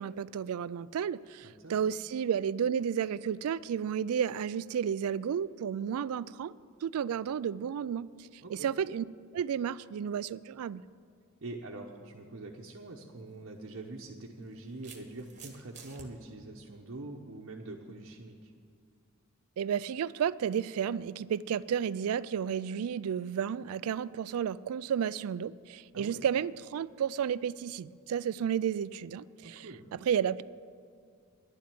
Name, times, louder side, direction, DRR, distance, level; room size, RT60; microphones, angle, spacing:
voice 1, 0.0-6.5 6.8-9.0 9.3-10.8 19.6-30.4, right 8 dB, 75° right, 19 dB, 0.3 m, -32 dB
voice 2, 1.4-1.8 8.4-8.7 11.4-18.5 25.9-26.3 29.4-29.9, right 2 dB, 60° right, -1 dB, 0.9 m, -44 dB
sound 1, 12.9-13.1 14.1-16.1, right 6 dB, 35° right, 1.3 m, -51 dB
11.0 x 7.5 x 9.5 m, 2.2 s
head